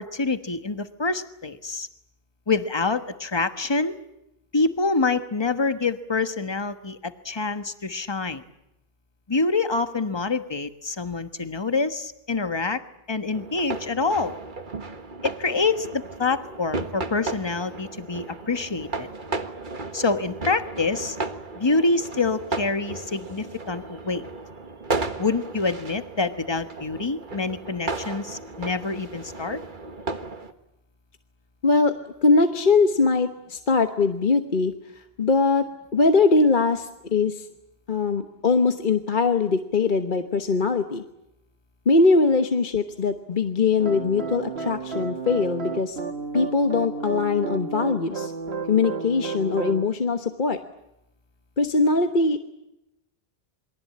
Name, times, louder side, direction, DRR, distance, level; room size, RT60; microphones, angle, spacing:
voice 1, 0.0-1.9 2.5-4.0 4.5-8.4 9.3-12.8 13.1-14.3 15.2-19.1 19.9-21.2 21.6-24.2 25.2-29.6, left 3 dB, 25° left, 9 dB, 1.3 m, -26 dB
sound 1, 13.3-30.5, right 3 dB, 50° right, 1.7 m, -34 dB
voice 2, 31.6-37.5 37.9-41.0 41.9-46.0 46.3-48.3 48.7-50.6 51.6-52.4, left 4 dB, 50° left, 7 dB, 1.3 m, -22 dB
sound 2, 43.8-49.9, right 4 dB, 80° right, 1.8 m, -32 dB
28.0 x 22.5 x 8.7 m, 0.87 s
omnidirectional pair, 1.0 m